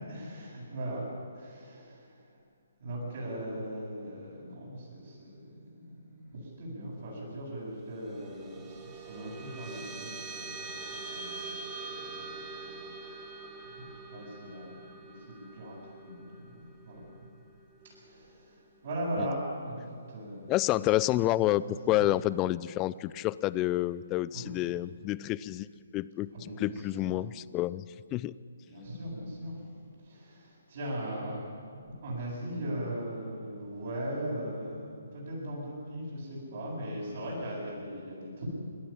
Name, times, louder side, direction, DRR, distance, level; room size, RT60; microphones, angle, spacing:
voice 1, 0.1-1.1 1.3-2.4 2.8-12.9 13.7-17.1 17.9-20.6 21.5-22.1 24.3-24.6 26.3-27.2 28.6-31.4 31.9-38.5, right 1 dB, 50° right, -7 dB, 7.8 m, -39 dB
sound 1, 7.9-18.6, right 3 dB, 20° right, 2.1 m, -44 dB
voice 2, 20.5-25.7 25.9-26.3 26.6-27.8 28.1-28.3, left 15 dB, 20° left, 18 dB, 0.4 m, -29 dB
27.5 x 13.0 x 8.8 m, 2.3 s
figure-of-eight pair, 135°, 0 cm